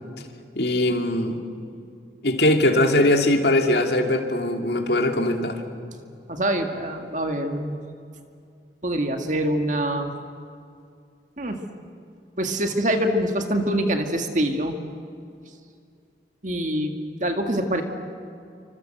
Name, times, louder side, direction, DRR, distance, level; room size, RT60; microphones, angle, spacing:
voice 1, 0.5-1.4 2.2-5.6, left 1 dB, 65° left, 4 dB, 2.6 m, -21 dB
voice 2, 6.3-7.8 8.8-10.1 11.4-11.6 12.4-14.8 16.4-17.0 17.2-17.8, right 1 dB, 45° right, 5 dB, 1.9 m, -24 dB
28.0 x 25.5 x 7.9 m, 2.5 s
head